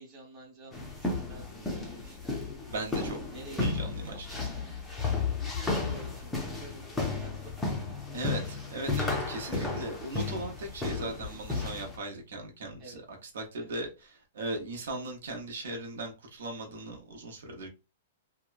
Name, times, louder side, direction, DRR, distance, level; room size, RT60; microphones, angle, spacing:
voice 1, 0.0-2.5 3.3-3.8 4.0-4.7 5.4-7.8 12.8-13.0 13.5-13.7, right 1 dB, 15° right, 1.0 m, -50 dB
sound 1, 0.7-12.0, left 3 dB, 5° left, 0.4 m, -33 dB
voice 2, 2.7-3.2 3.6-4.4 8.1-13.9 14.3-17.7, right 2 dB, 75° right, 0.8 m, -38 dB
2.8 x 2.1 x 2.4 m
supercardioid pair, 175°, 0 cm